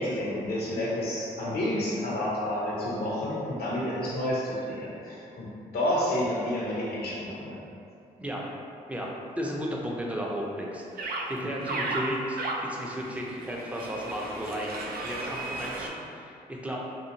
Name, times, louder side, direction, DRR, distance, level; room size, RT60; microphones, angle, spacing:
voice 1, 0.0-5.5 5.7-7.6, left 1 dB, 70° left, -5 dB, 0.8 m, -30 dB
voice 2, 9.4-16.8, equal, 10° right, -3 dB, 0.6 m, -34 dB
sound 1, 11.0-11.2 11.6-15.9, right 2 dB, 65° right, 0.4 m, -34 dB
2.7 x 2.4 x 2.8 m, 2.5 s
supercardioid pair, 50°, 17 cm